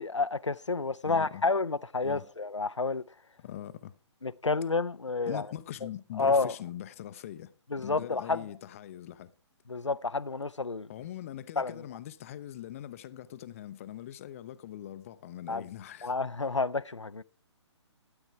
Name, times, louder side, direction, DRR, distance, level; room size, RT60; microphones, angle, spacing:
voice 1, 0.0-3.0 4.2-5.5 6.2-6.6 7.7-8.4 9.7-10.9 11.6-11.7 15.5-15.6 16.0-17.2, left 3 dB, 85° left, 0.5 m, -30 dB
voice 2, 1.0-1.4 2.0-2.2 3.4-3.9 5.2-9.3 10.9-16.1, left 12 dB, 30° left, 0.6 m, -42 dB
13.0 x 8.9 x 4.6 m
figure-of-eight pair, 135°, 15 cm